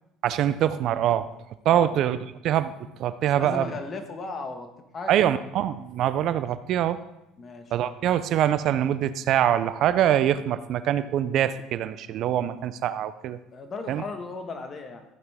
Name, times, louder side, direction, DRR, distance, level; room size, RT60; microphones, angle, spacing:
voice 1, 0.2-1.3 1.6-2.2 2.4-2.7 3.0-3.6 5.1-7.0 7.7-13.4 13.9-14.0, right 11 dB, 60° right, 13 dB, 0.6 m, -24 dB
voice 2, 3.4-5.1 7.4-7.7 13.5-15.0, left 3 dB, 40° left, 6 dB, 1.7 m, -36 dB
13.5 x 9.7 x 3.7 m, 0.91 s
hypercardioid pair, 70°, 0 cm